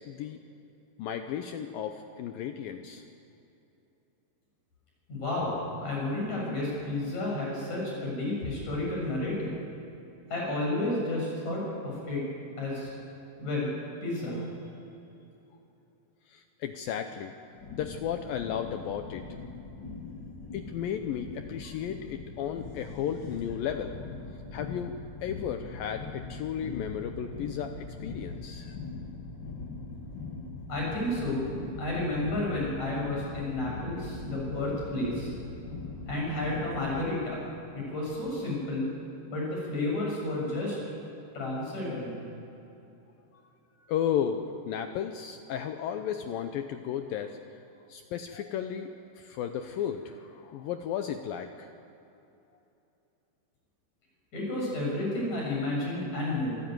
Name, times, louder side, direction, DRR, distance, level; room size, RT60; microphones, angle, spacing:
voice 1, 0.1-0.4 1.0-3.0 16.3-17.3 17.7-19.2 20.5-24.0 24.5-28.8 43.8-47.4 47.9-48.9 49.2-51.7, left 9 dB, 75° left, 7 dB, 2.2 m, -34 dB
voice 2, 5.1-5.5 5.8-9.5 10.3-12.2 12.6-12.9 13.4-13.7 14.0-14.4 30.7-31.4 31.8-35.3 36.1-37.5 37.7-38.9 39.3-40.8 41.3-42.1 54.3-56.6, left 2 dB, 40° left, -3 dB, 8.2 m, -31 dB
sound 1, 17.5-37.1, left 3 dB, 60° left, 1.2 m, -41 dB
26.5 x 14.0 x 9.3 m, 2.9 s
omnidirectional pair, 4.9 m